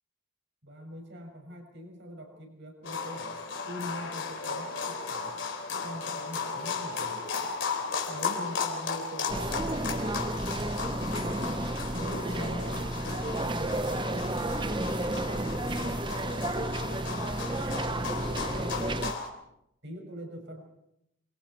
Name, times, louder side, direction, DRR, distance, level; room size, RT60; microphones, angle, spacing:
voice 1, 0.6-3.4 3.6-5.3 5.8-7.3 8.1-10.4 11.1-13.0 13.5-14.4 14.9-16.7 17.5-19.0 19.8-20.6, equal, 60° right, 3 dB, 6.6 m, -43 dB
sound 1, 2.8-19.3, left 5 dB, 60° left, 3.8 m, -35 dB
sound 2, 9.3-19.1, right 1 dB, 25° right, 0.8 m, -32 dB
27.5 x 24.5 x 4.6 m, 0.80 s
head